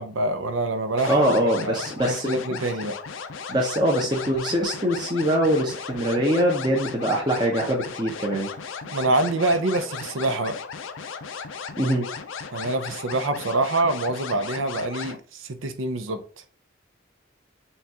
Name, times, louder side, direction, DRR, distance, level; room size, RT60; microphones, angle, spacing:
voice 1, 0.0-1.2 1.6-1.8 2.1-3.0 8.9-10.6 12.5-16.2, right 2 dB, 90° right, 0.6 m, -25 dB
sound 1, 1.0-15.2, left 6 dB, 80° left, 0.5 m, -36 dB
voice 2, 1.1-2.4 3.5-8.5 11.8-12.1, equal, 20° right, 0.7 m, -23 dB
5.6 x 2.4 x 2.8 m
head